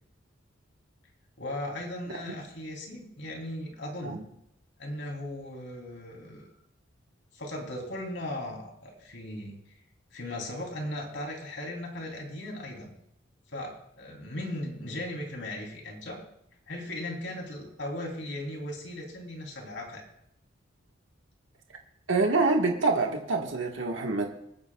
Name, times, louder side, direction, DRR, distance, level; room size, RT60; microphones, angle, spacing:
voice 1, 1.4-4.2 4.8-6.5 7.3-9.6 10.1-12.9 13.5-16.2 16.7-20.0, left 1 dB, 70° left, 1 dB, 3.3 m, -37 dB
voice 2, 22.1-24.3, right 3 dB, 80° right, 1 dB, 1.5 m, -26 dB
26.5 x 9.8 x 2.4 m, 0.76 s
head